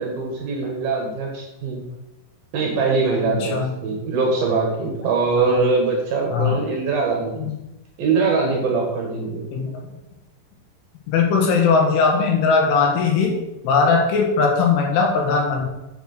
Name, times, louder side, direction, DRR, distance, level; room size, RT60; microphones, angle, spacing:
voice 1, 0.0-1.8 2.5-3.6 3.8-7.5 8.0-9.5, right 4 dB, 60° right, -1 dB, 2.9 m, -22 dB
voice 2, 5.3-5.6 6.3-6.6 7.4-7.6 9.5-9.8 11.1-13.3 13.6-15.6, left 5 dB, 75° left, 1 dB, 4.0 m, -19 dB
8.5 x 6.5 x 6.7 m, 0.99 s
omnidirectional pair, 5.8 m